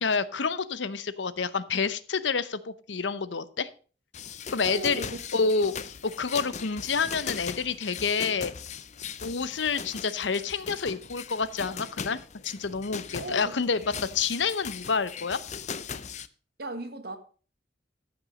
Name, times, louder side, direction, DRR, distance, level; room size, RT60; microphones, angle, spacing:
voice 1, 0.0-3.7 4.5-5.1 5.3-5.7 6.2-8.5 9.2-15.4, left 5 dB, 80° left, 0.8 m, -28 dB
sound 1, 4.1-16.3, left 6 dB, 40° left, 0.6 m, -39 dB
voice 2, 4.6-5.7 13.2-13.6 16.6-17.2, right 2 dB, 60° right, 1.6 m, -37 dB
14.5 x 6.1 x 5.3 m
head